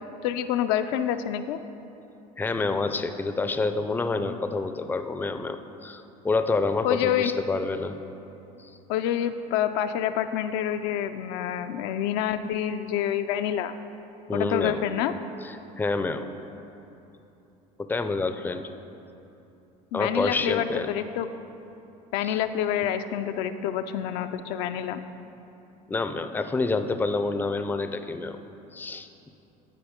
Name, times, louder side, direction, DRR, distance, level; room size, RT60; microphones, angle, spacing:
voice 1, 0.2-1.6 6.8-7.3 8.9-13.7 14.3-15.1 19.9-21.3 22.1-25.0, left 10 dB, 75° left, 9 dB, 0.4 m, -27 dB
voice 2, 2.4-8.0 8.6-8.7 14.3-14.8 15.4-16.3 17.8-18.7 19.9-20.9 22.2-22.4 25.9-28.4 28.7-29.1, left 3 dB, 10° left, 8 dB, 0.4 m, -28 dB
13.0 x 4.5 x 3.6 m, 3.0 s
supercardioid pair, 90°, 17 cm